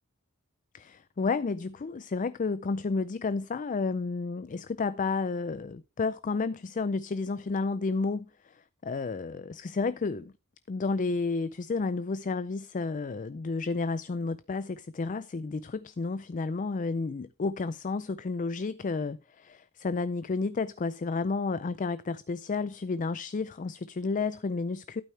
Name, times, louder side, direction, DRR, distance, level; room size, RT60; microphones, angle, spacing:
voice 1, 0.7-10.3 10.7-25.0, left 4 dB, 35° left, 0.4 m, -31 dB
11.5 x 9.0 x 3.2 m
head